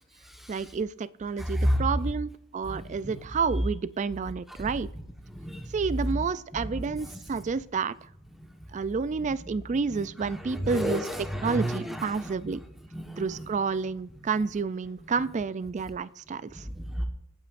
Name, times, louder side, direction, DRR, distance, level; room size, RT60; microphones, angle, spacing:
voice 1, 0.5-4.9 5.7-8.0 8.7-11.1 11.4-12.6 13.2-16.7, right 5 dB, 35° right, 17 dB, 0.3 m, -30 dB
voice 2, 1.4-1.8 2.7-3.1 5.3-5.7 10.3-12.1 12.9-13.5 16.7-17.0, equal, ahead, 3 dB, 1.2 m, -30 dB
25.0 x 9.0 x 2.5 m, 0.78 s
head